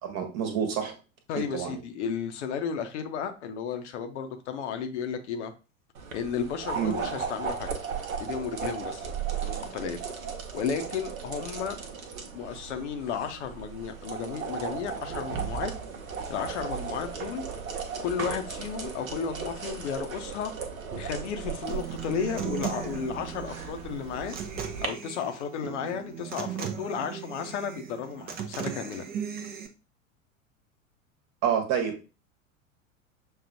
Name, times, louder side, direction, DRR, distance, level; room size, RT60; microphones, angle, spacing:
voice 1, 0.0-1.0 1.3-1.7 6.7-6.9 31.4-32.0, right 8 dB, 40° right, 5 dB, 1.2 m, -28 dB
voice 2, 1.3-5.5 6.1-7.7 8.2-9.1 9.4-10.0 10.5-11.8 12.3-15.7 16.3-17.4 18.0-20.5 21.0-24.4 24.8-29.0, left 7 dB, 55° left, 7 dB, 0.7 m, -33 dB
sound 1, 5.9-24.9, right 6 dB, 75° right, 0.9 m, -36 dB
Human voice / Acoustic guitar, 21.7-29.7, right 8 dB, 25° right, 0.5 m, -37 dB
6.2 x 2.3 x 2.6 m, 0.31 s
figure-of-eight pair, 85°, 42 cm